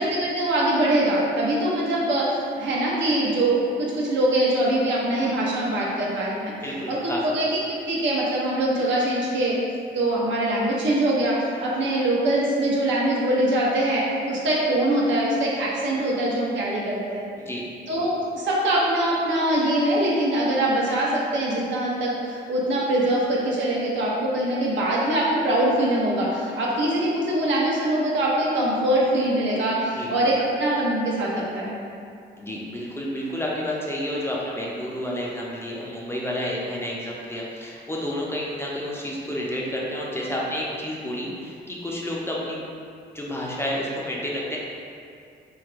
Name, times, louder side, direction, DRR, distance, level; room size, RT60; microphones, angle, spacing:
voice 1, 0.0-6.5 6.9-9.6 9.9-17.3 17.9-31.7, right 1 dB, 70° right, -5 dB, 0.7 m, -23 dB
voice 2, 6.6-7.2 17.4-17.6 29.9-30.1 32.4-42.6 43.1-44.6, equal, 10° left, -4 dB, 0.5 m, -30 dB
2.8 x 2.4 x 3.2 m, 2.4 s
cardioid pair, 90°, 20 cm